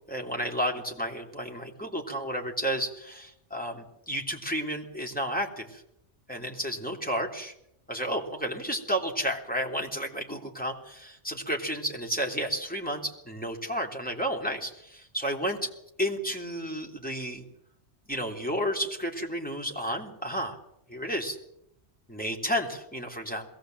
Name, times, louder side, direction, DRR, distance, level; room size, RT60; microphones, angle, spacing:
voice 1, 0.1-5.8 6.3-7.5 7.9-15.6 16.0-17.4 18.1-20.6 20.9-21.4 22.1-23.5, equal, 5° left, 0 dB, 3.3 m, -32 dB
21.5 x 17.5 x 7.9 m, 0.79 s
omnidirectional pair, 1.2 m